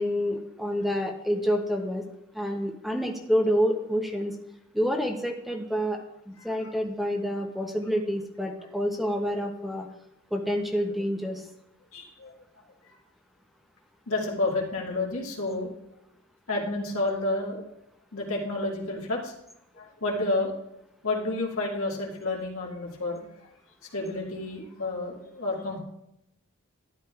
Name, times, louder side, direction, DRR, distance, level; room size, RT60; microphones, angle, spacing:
voice 1, 0.0-2.0 2.3-4.4 4.7-6.0 6.3-9.9 10.3-11.5, equal, ahead, 2 dB, 0.7 m, -28 dB
voice 2, 11.9-12.3 14.1-15.7 16.5-17.7 18.1-19.3 19.7-20.5 21.0-23.5 23.9-25.8, left 2 dB, 75° left, -2 dB, 1.9 m, -30 dB
12.5 x 9.8 x 2.4 m, 0.82 s
head